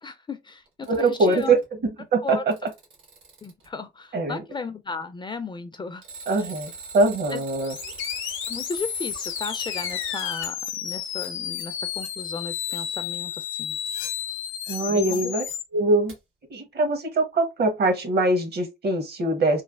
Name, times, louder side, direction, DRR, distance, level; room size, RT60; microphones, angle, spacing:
voice 1, 0.0-1.6 2.2-2.4 3.4-6.0 6.3-6.5 7.3-7.4 8.5-13.8 14.9-15.3, left 4 dB, 25° left, 0.3 m, -35 dB
Alarm, 0.7-1.6 2.3-3.7 6.0-10.5 13.8-13.9 16.1-16.2, right 5 dB, 80° right, 1.3 m, -42 dB
voice 2, 0.9-2.5 4.1-4.4 6.3-7.7 14.7-15.4 15.7-16.1 16.5-19.6, right 2 dB, 55° right, 0.9 m, -23 dB
sound 1, 7.6-15.6, left 10 dB, 85° left, 0.5 m, -32 dB
3.2 x 2.3 x 2.3 m
cardioid pair, 90°, 20 cm